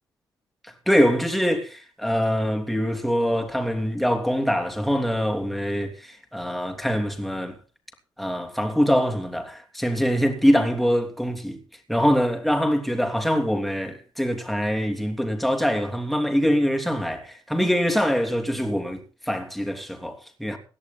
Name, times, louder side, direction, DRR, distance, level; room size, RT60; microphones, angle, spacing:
voice 1, 0.9-7.5 8.2-11.6 11.9-20.6, equal, ahead, 3.2 m, -24 dB
17.5 x 11.0 x 4.2 m
cardioid pair, 85°, 8 cm